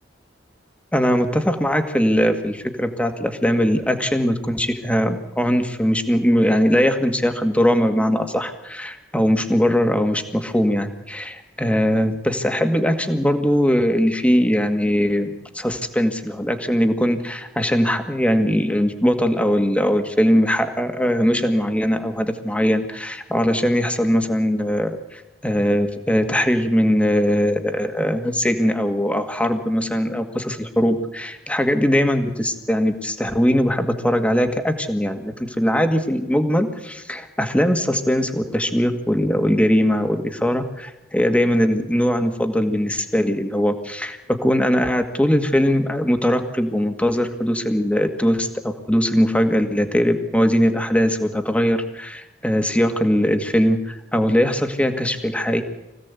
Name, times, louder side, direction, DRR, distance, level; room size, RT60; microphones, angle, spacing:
voice 1, 0.9-55.6, equal, 5° left, 6 dB, 2.0 m, -20 dB
24.5 x 16.5 x 8.4 m, 1.0 s
head